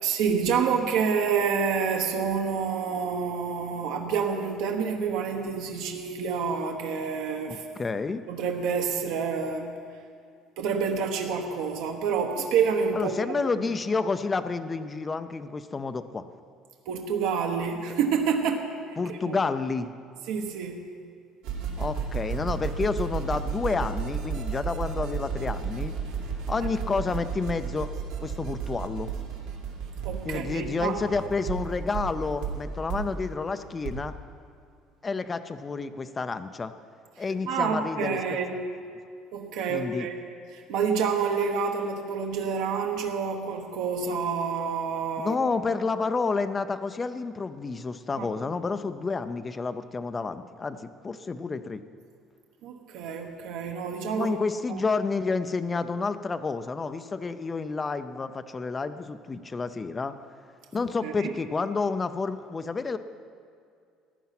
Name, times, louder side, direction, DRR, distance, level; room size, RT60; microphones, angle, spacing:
voice 1, 0.0-7.6 8.3-9.7 10.6-13.4 16.9-19.4 20.3-20.8 25.3-25.4 26.6-26.7 30.0-31.0 37.5-38.6 39.3-40.1 40.5-45.4 48.2-48.3 52.6-54.3 54.7-54.8 61.0-61.3, right 6 dB, 65° right, 3 dB, 1.1 m, -28 dB
voice 2, 7.5-8.2 12.9-16.2 19.0-19.9 21.8-25.9 26.5-27.9 28.2-29.1 30.2-34.1 35.0-36.7 37.2-38.4 39.7-40.1 45.2-51.8 54.1-60.1 60.7-63.0, left 4 dB, 15° left, 10 dB, 0.4 m, -30 dB
sound 1, 21.4-33.9, right 6 dB, 80° right, 2.2 m, -33 dB
15.0 x 10.5 x 5.9 m, 2.3 s
cardioid pair, 180°, 0 cm